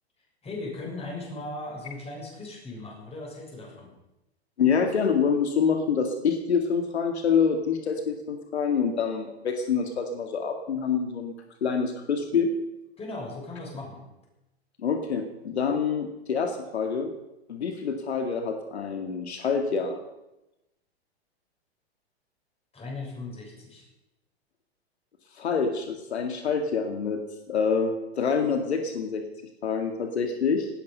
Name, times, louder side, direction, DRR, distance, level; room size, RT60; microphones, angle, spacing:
voice 1, 0.4-3.9 13.0-14.0 22.7-23.8, left 2 dB, 20° left, -1 dB, 7.2 m, -38 dB
voice 2, 4.6-11.3 11.6-12.5 14.8-17.1 17.5-20.0 25.4-27.2 27.5-29.2 29.6-30.7, left 6 dB, 80° left, 5 dB, 2.2 m, -26 dB
18.0 x 13.0 x 5.6 m, 0.92 s
hypercardioid pair, 110°, 32 cm